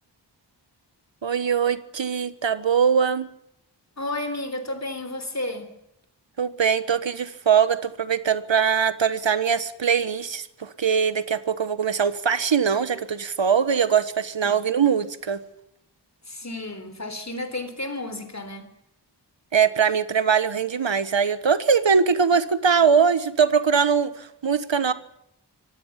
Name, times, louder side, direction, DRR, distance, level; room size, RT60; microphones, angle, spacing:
voice 1, 1.2-3.3 6.4-15.4 19.5-24.9, right 6 dB, 85° right, 13 dB, 1.4 m, -22 dB
voice 2, 4.0-5.7 14.4-14.5 16.2-18.7, left 2 dB, 35° left, 9 dB, 4.0 m, -32 dB
25.0 x 17.5 x 7.4 m, 0.77 s
wide cardioid pair, 80°, 44 cm